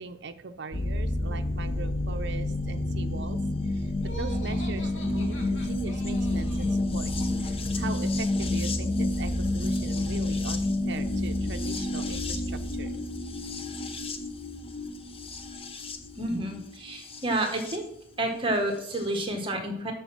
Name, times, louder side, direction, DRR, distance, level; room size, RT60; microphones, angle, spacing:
voice 1, 0.0-12.9 14.7-15.2, right 4 dB, 65° right, 6 dB, 0.6 m, -41 dB
sound 1, 0.7-17.8 18.9-19.0, left 2 dB, 30° left, 0.8 m, -29 dB
Laughter, 4.0-6.8, right 1 dB, 75° left, 1.7 m, -45 dB
voice 2, 16.2-17.8 18.2-19.9, right 1 dB, 30° right, 3 dB, 1.4 m, -29 dB
6.8 x 6.3 x 5.9 m, 0.70 s
head